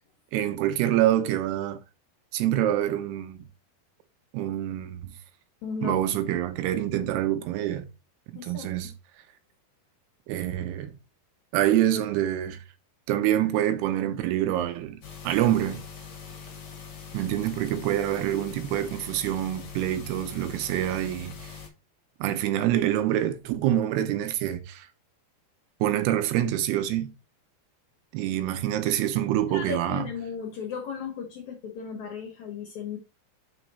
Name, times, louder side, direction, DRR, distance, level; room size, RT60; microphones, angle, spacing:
voice 1, 0.3-1.8 2.3-3.4 4.3-5.1 5.8-7.9 8.4-8.9 10.3-10.9 11.5-12.6 13.1-15.8 17.1-21.5 22.2-24.9 25.8-27.1 28.1-30.1, right 12 dB, 85° right, 2.8 m, -26 dB
voice 2, 5.6-6.0 8.3-8.9 29.5-33.0, left 6 dB, 65° left, 1.9 m, -35 dB
sound 1, 15.0-21.7, left 6 dB, 50° left, 1.5 m, -42 dB
5.8 x 4.6 x 4.1 m
omnidirectional pair, 4.6 m